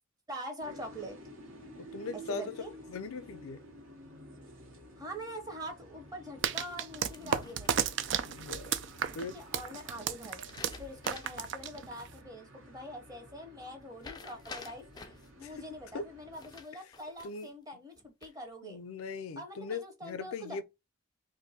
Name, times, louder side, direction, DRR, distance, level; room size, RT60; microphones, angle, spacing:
voice 1, 0.3-1.2 2.1-2.7 5.0-7.9 9.1-10.4 10.8-18.8 19.4-20.6, equal, 20° right, 0.8 m, -44 dB
sound 1, 0.6-16.6, right 1 dB, 75° right, 1.3 m, -52 dB
voice 2, 1.8-2.6 2.9-3.6 7.2-7.6 8.2-8.8 9.1-9.4 15.4-15.5 15.9-16.1 17.2-17.5 18.6-20.6, left 4 dB, 90° left, 0.4 m, -40 dB
sound 2, 6.4-12.2, right 7 dB, 60° right, 0.3 m, -34 dB
sound 3, 7.1-8.1 10.3-11.5 11.9-12.0 14.0-15.3 16.3-17.5 18.0-18.6, left 4 dB, 20° left, 0.4 m, -49 dB
2.6 x 2.5 x 4.0 m
head